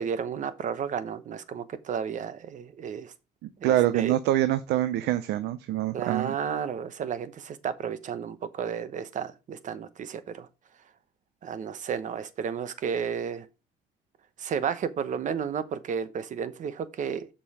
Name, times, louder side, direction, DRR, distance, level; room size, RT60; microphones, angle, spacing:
voice 1, 0.0-3.1 3.6-4.1 5.9-10.5 11.4-13.5 14.4-17.3, right 7 dB, 50° right, 0.9 m, -32 dB
voice 2, 3.6-6.3, right 13 dB, 80° right, 0.6 m, -25 dB
7.0 x 5.5 x 4.9 m
cardioid pair, 110°, 17 cm